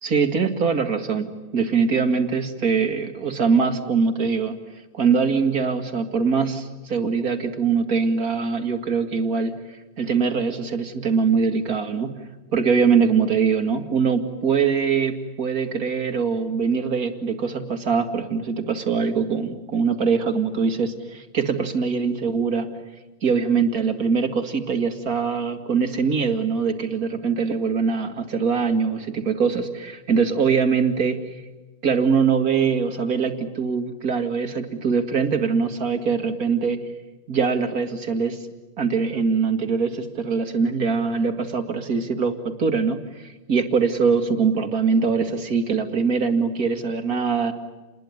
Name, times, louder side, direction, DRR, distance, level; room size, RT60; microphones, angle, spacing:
voice 1, 0.0-4.6 4.9-9.6 10.0-12.2 12.5-22.7 23.2-31.4 31.8-36.8 37.3-38.4 38.8-47.5, right 5 dB, 80° right, 7 dB, 2.6 m, -22 dB
29.5 x 21.0 x 9.5 m, 1.1 s
omnidirectional pair, 1.5 m